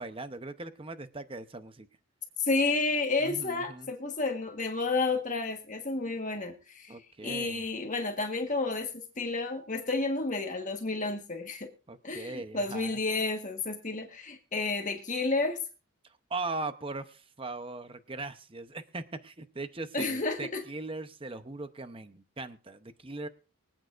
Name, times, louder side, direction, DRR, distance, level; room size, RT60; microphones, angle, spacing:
voice 1, 0.0-1.9 3.2-3.9 6.9-7.6 11.9-13.0 16.0-23.3, right 3 dB, 25° right, 10 dB, 0.8 m, -39 dB
voice 2, 2.4-7.0 7.2-11.7 12.0-15.6 19.9-20.6, left 3 dB, 35° left, 4 dB, 1.4 m, -31 dB
24.0 x 8.9 x 2.5 m, 0.34 s
head